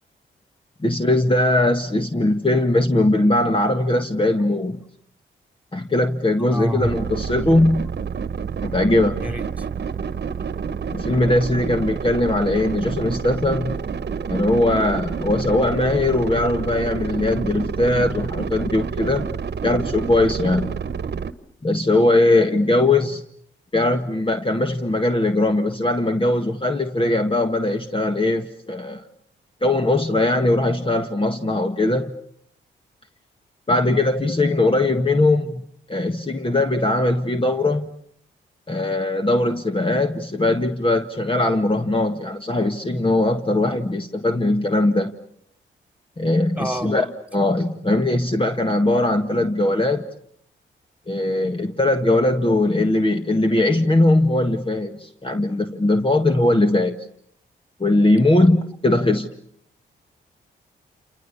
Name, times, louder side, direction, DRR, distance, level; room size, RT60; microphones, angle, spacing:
voice 1, 0.8-4.8 5.7-7.9 8.6-9.2 10.9-13.7 14.3-19.2 19.6-20.7 21.6-23.2 23.7-29.1 29.6-32.1 33.7-35.6 35.9-37.9 38.7-45.1 46.2-47.1 47.3-50.0 51.1-57.1 57.8-59.3, left 2 dB, 25° left, 6 dB, 1.7 m, -20 dB
voice 2, 6.5-6.9 9.2-9.6 46.5-46.9, right 1 dB, 5° right, 8 dB, 3.2 m, -28 dB
sound 1, 6.8-21.3, right 6 dB, 55° right, 1.3 m, -28 dB
28.5 x 28.5 x 7.1 m, 0.67 s
cardioid pair, 60°, 20 cm